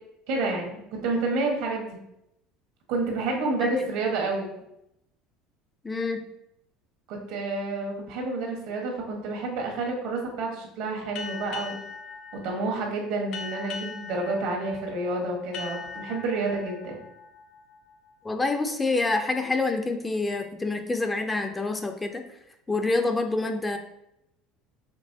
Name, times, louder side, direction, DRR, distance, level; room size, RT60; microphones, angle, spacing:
voice 1, 0.3-1.8 2.9-4.5 7.1-11.8 12.3-17.0, right 3 dB, 75° right, 0 dB, 1.4 m, -29 dB
voice 2, 5.8-6.2 18.2-22.2 22.7-23.8, left 3 dB, 15° left, 6 dB, 0.5 m, -27 dB
sound 1, 11.2-18.4, left 5 dB, 65° left, 0.7 m, -41 dB
5.2 x 2.9 x 2.7 m, 0.82 s
supercardioid pair, 95°, 0 cm